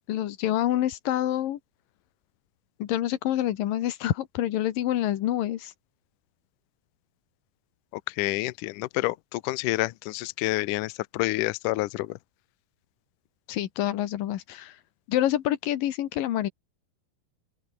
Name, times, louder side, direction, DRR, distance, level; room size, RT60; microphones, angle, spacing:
voice 1, 0.1-1.6 2.8-5.7 13.5-14.8 15.1-16.5, left 13 dB, 65° left, 2.8 m, -27 dB
voice 2, 8.1-12.2, left 19 dB, 85° left, 1.8 m, -28 dB
open air
omnidirectional pair, 4.7 m